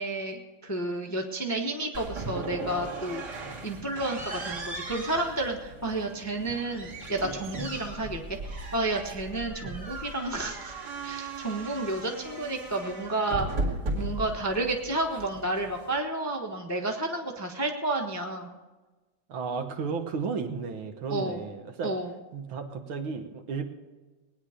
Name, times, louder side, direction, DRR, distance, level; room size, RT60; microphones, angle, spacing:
voice 1, 0.0-10.7 11.0-13.5 13.9-18.6 21.1-21.5 21.8-22.1, right 2 dB, 15° left, 2 dB, 0.7 m, -31 dB
sound 1, 1.9-16.0, right 2 dB, 50° right, 2.6 m, -37 dB
voice 2, 19.3-21.9 22.3-23.6, right 5 dB, 75° right, 6 dB, 1.9 m, -33 dB
19.5 x 9.7 x 5.0 m, 1.2 s
omnidirectional pair, 2.2 m